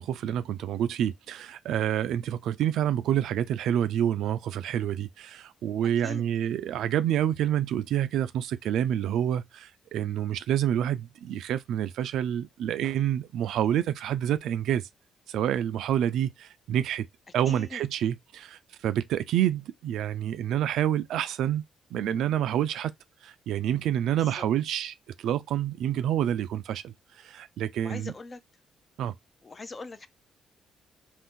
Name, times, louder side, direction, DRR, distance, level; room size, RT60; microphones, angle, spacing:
voice 1, 0.0-14.9 15.3-17.0 17.3-21.6 21.9-22.9 23.2-28.1 29.0-29.1, right 10 dB, 80° right, 0.3 m, -28 dB
voice 2, 17.5-17.8 24.2-24.5 27.8-28.4 29.4-30.1, left 3 dB, 30° left, 0.4 m, -41 dB
2.6 x 2.5 x 3.6 m
cardioid pair, 90°, 0 cm